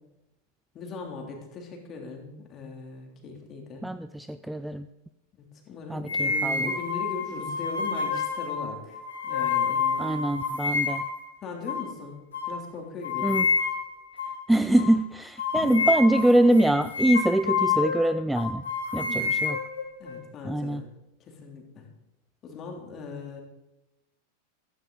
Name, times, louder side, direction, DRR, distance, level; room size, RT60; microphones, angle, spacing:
voice 1, 0.7-3.9 5.7-10.3 11.4-12.2 12.5-13.4 15.5-15.9 18.9-19.4 20.0-20.9 21.2-21.9 22.4-23.4, left 4 dB, 30° left, 1 dB, 3.2 m, -39 dB
voice 2, 3.8-4.9 5.9-6.7 10.0-11.1 13.2-13.5 14.5-18.6 18.9-19.6 20.4-20.8, right 1 dB, 5° right, 13 dB, 0.4 m, -24 dB
sound 1, 6.1-11.2 11.7-11.9 12.3-12.5 13.0-13.9 14.2-14.4 14.8-14.9 15.4-18.0 18.4-20.2, left 5 dB, 65° left, 3.4 m, -28 dB
15.5 x 14.0 x 4.0 m, 0.94 s
figure-of-eight pair, 90°, 0 cm